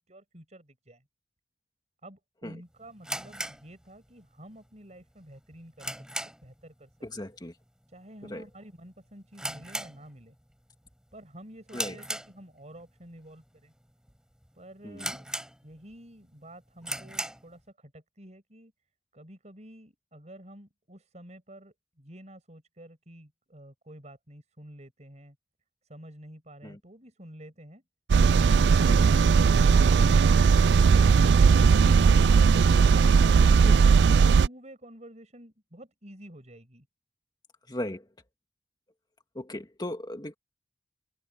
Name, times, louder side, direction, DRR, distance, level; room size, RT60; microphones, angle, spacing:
voice 1, 0.1-1.1 2.0-5.9 6.4-7.3 7.9-10.4 11.1-13.7 14.5-15.3 15.6-18.7 19.1-25.4 25.9-27.8 34.1-36.9, right 1 dB, 40° right, 6.5 m, -50 dB
sound 1, 3.0-4.4 4.6-4.7 5.3-6.6 6.9-7.2 7.5-7.6 8.3-8.5 8.8-8.9 9.3-10.5 10.9-11.2 11.7-12.8 13.4-13.5 14.1-14.2 14.4-14.5 15.0-15.9 16.3-16.4 16.8-17.5, right 1 dB, 5° right, 4.8 m, -37 dB
voice 2, 7.0-7.6 8.2-8.4 11.7-12.0 14.8-15.2 26.6-26.8 28.8-29.2 33.6-33.8 37.7-38.1 39.3-40.3, left 1 dB, 25° left, 2.1 m, -37 dB
sound 2, 28.1-34.5, right 5 dB, 70° right, 0.4 m, -18 dB
head